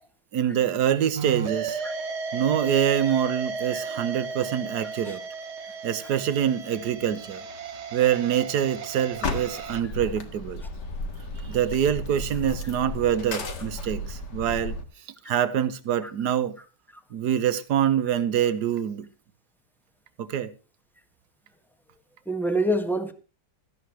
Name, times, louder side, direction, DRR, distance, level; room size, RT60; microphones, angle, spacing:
voice 1, 0.3-1.8 2.3-5.2 5.8-7.4 7.9-10.6 11.4-14.7 15.3-16.5 17.1-19.0 20.2-20.5, right 9 dB, 65° right, 1.5 m, -25 dB
sound 1, 1.2-9.8, right 5 dB, 45° right, 1.1 m, -34 dB
sound 2, 9.1-14.8, left 2 dB, 65° left, 2.3 m, -34 dB
voice 2, 22.3-23.1, right 1 dB, ahead, 1.4 m, -26 dB
16.5 x 13.5 x 3.1 m
omnidirectional pair, 2.0 m